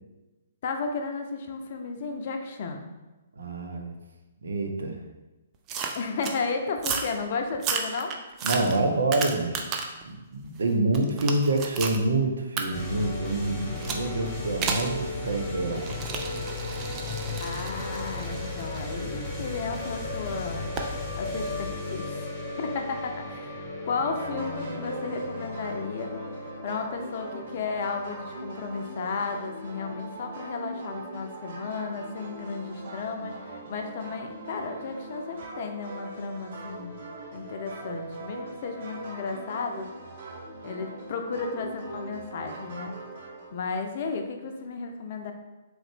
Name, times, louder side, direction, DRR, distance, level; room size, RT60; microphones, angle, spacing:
voice 1, 0.6-2.8 5.9-8.2 17.4-20.7 21.2-22.3 22.6-36.9 37.3-39.9 40.6-42.9 43.5-45.3, left 4 dB, 50° left, 4 dB, 0.5 m, -34 dB
voice 2, 3.4-3.9 4.4-5.0 8.4-9.7 10.0-15.9, right 2 dB, 70° right, 4 dB, 0.6 m, -27 dB
sound 1, 5.7-6.4 6.8-7.1 7.5-10.0 10.4-12.0 12.6-12.7 13.8-14.1 14.6-14.9 15.8-19.8 20.8-20.9, right 5 dB, 25° right, 0.4 m, -33 dB
sound 2, 12.7-30.3, left 2 dB, 10° left, 1.2 m, -36 dB
sound 3, 23.9-43.5, right 1 dB, 50° right, 1.1 m, -41 dB
3.7 x 3.1 x 3.4 m, 1.1 s
figure-of-eight pair, 125°, 0 cm